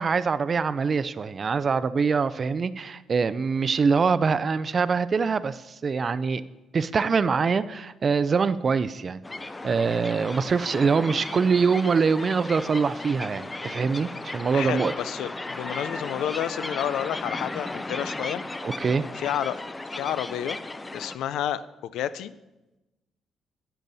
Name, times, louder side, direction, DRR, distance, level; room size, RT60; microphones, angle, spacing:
voice 1, 0.0-6.4 6.7-9.2 9.6-14.9 18.6-19.1, right 5 dB, 40° right, 15 dB, 0.4 m, -24 dB
sound 1, 9.2-21.2, left 2 dB, 20° left, 0.5 m, -36 dB
voice 2, 14.5-18.4 19.2-19.6 19.9-20.6 20.9-21.7 21.9-22.3, left 10 dB, 85° left, 15 dB, 0.4 m, -30 dB
10.5 x 8.9 x 4.1 m, 1.0 s
cardioid pair, 90°, 0 cm